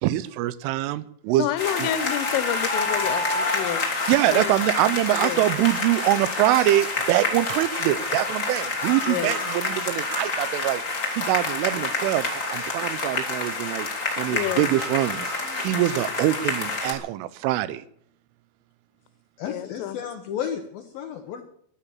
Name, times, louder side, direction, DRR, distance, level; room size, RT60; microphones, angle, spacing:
voice 1, 0.0-1.5 1.8-1.9 4.1-10.8 11.1-13.9 14.2-15.3 15.6-17.8, right 15 dB, 85° right, 17 dB, 3.3 m, -24 dB
voice 2, 1.4-3.8 4.3-4.6 5.2-5.5 9.1-9.4 14.3-14.7 19.5-20.0, left 12 dB, 90° left, 14 dB, 3.7 m, -29 dB
sound 1, 1.6-16.9, left 3 dB, 25° left, 2.0 m, -28 dB
voice 3, 19.4-21.4, left 8 dB, 75° left, 6 dB, 2.2 m, -33 dB
14.0 x 12.0 x 7.3 m, 0.67 s
omnidirectional pair, 5.6 m